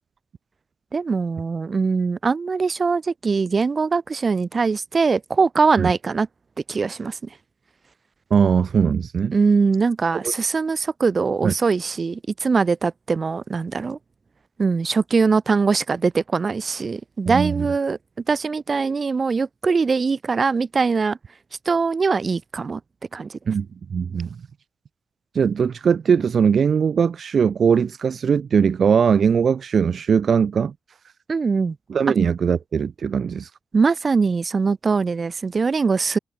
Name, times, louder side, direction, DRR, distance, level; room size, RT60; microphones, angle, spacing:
voice 1, 0.9-6.3 6.7-7.2 9.3-14.0 14.6-18.0 18.3-21.2 21.7-22.8 23.1-23.4 31.3-31.8 33.7-36.2, right 4 dB, 50° right, 2.4 m, -22 dB
voice 2, 8.3-9.3 11.4-11.5 17.3-17.7 23.5-24.3 25.3-30.7 31.9-33.5, right 6 dB, 65° right, 0.7 m, -20 dB
supercardioid pair, 45°, 0 cm